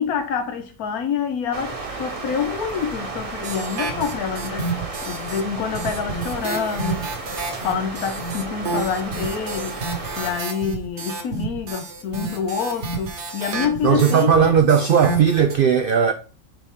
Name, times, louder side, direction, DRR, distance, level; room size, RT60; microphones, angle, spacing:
voice 1, 0.0-7.1 7.6-9.8 10.2-14.3, left 7 dB, 85° left, 1.2 m, -27 dB
sound 1, 1.5-10.4, right 3 dB, 25° right, 0.9 m, -33 dB
sound 2, 3.4-5.4 5.7-15.5, right 3 dB, 55° right, 1.4 m, -30 dB
voice 2, 13.8-16.1, right 7 dB, 85° right, 0.4 m, -17 dB
7.3 x 4.0 x 3.6 m
omnidirectional pair, 1.5 m